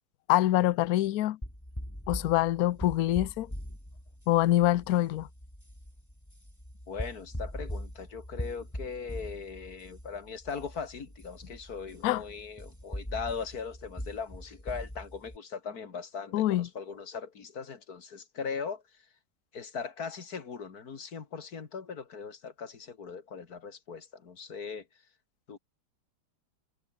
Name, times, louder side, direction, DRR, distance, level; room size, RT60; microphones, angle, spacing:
voice 1, 0.3-1.4 2.1-3.5 4.3-5.3 12.0-12.2 16.3-16.7, left 14 dB, 75° left, 0.8 m, -25 dB
sound 1, 1.4-15.4, equal, 5° left, 7.5 m, -42 dB
voice 2, 6.9-18.8 19.5-24.8 25.5-25.6, left 5 dB, 45° left, 2.3 m, -39 dB
omnidirectional pair, 2.4 m